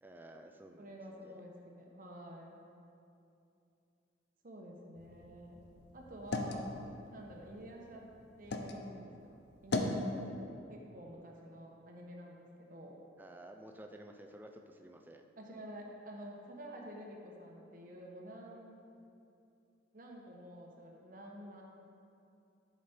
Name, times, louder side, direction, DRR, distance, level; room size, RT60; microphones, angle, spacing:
voice 1, 0.0-1.4 13.2-15.2, right 1 dB, 10° right, 4 dB, 0.4 m, -53 dB
voice 2, 0.8-2.5 4.4-5.6 5.9-6.7 7.1-8.1 8.4-9.1 9.6-10.3 10.7-13.0 15.4-18.7 19.9-21.6, right 1 dB, 45° right, 0 dB, 1.0 m, -49 dB
sound 1, 5.0-8.8 9.2-10.1, left 2 dB, 60° left, 0.6 m, -39 dB
11.5 x 5.1 x 4.3 m, 2.7 s
head